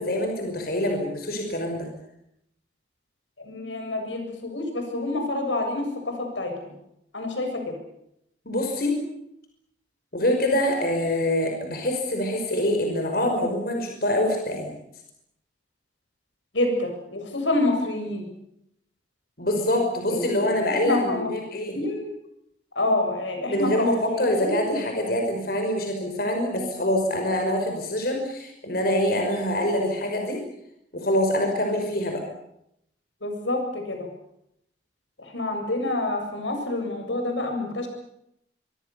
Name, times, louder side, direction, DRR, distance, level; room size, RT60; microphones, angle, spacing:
voice 1, 0.0-1.9 8.5-9.0 10.1-14.7 19.4-21.8 23.5-30.4 30.9-32.2, left 1 dB, 55° left, 3 dB, 5.6 m, -25 dB
voice 2, 3.4-6.7 7.1-7.8 16.5-18.3 20.1-21.3 21.7-22.1 22.8-24.8 33.2-34.1 35.2-37.9, left 2 dB, 90° left, 4 dB, 7.5 m, -28 dB
25.5 x 24.5 x 7.0 m, 0.77 s
head